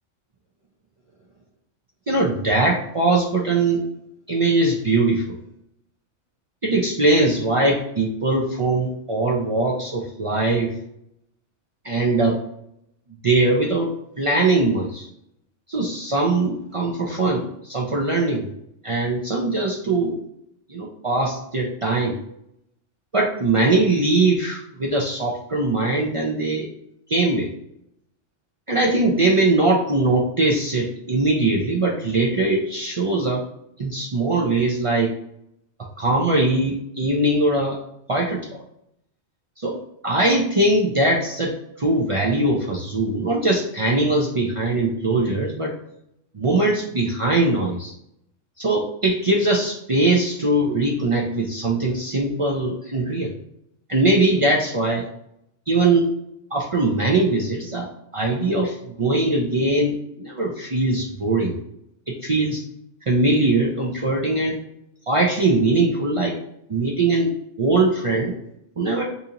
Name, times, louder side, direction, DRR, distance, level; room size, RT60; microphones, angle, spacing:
voice 1, 2.1-3.8 4.3-5.2 6.6-10.7 11.8-12.4 13.2-13.9 14.2-15.1 15.7-18.5 18.8-20.2 20.7-22.2 23.1-26.7 27.1-27.5 28.7-33.4 33.8-35.1 36.0-37.8 38.1-38.4 39.6-39.7 40.0-41.5 41.8-45.7 46.3-47.9 48.6-53.3 53.9-55.1 55.7-56.1 56.5-57.9 58.1-61.6 62.1-62.6 63.1-64.6 65.1-66.3 66.7-67.3 67.6-68.3 68.8-69.0, right 2 dB, 55° right, -3 dB, 0.3 m, -21 dB
2.8 x 2.7 x 3.7 m, 0.76 s
omnidirectional pair, 1.3 m